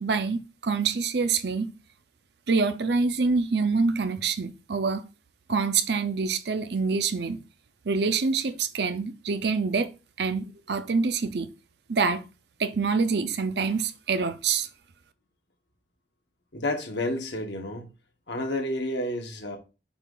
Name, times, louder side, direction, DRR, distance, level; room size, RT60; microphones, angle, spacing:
voice 1, 0.0-1.7 2.5-5.0 5.5-7.4 7.9-9.9 10.2-11.5 11.9-12.2 12.6-14.7, right 4 dB, 65° right, 0.6 m, -26 dB
voice 2, 16.5-17.9 18.3-19.6, left 1 dB, 75° left, 1.3 m, -30 dB
6.9 x 2.5 x 5.4 m
head